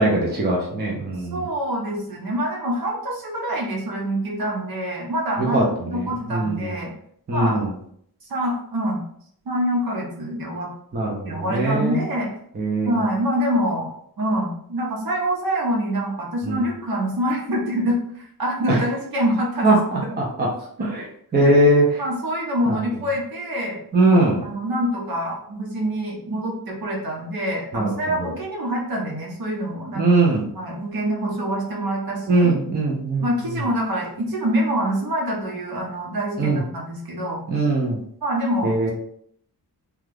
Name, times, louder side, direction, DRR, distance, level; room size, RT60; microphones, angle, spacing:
voice 1, 0.0-1.4 5.4-5.6 5.9-6.7 7.3-7.7 10.9-12.0 12.6-13.0 16.4-16.6 18.7-18.8 19.6-20.5 20.8-21.0 21.3-21.8 22.7-22.8 23.9-24.4 27.7-27.9 29.9-30.4 32.3-33.5 36.4-36.6 37.5-38.0 38.6-38.9, right 2 dB, 25° right, -2 dB, 0.6 m, -20 dB
voice 2, 1.2-6.9 7.3-7.6 8.3-9.0 9.5-10.7 11.2-12.3 12.9-13.9 14.2-20.2 21.4-21.5 22.0-23.8 24.4-30.1 30.5-32.5 33.2-37.4 38.2-38.9, equal, 65° right, -2 dB, 1.0 m, -25 dB
2.9 x 2.4 x 3.3 m, 0.66 s
wide cardioid pair, 145°, 39 cm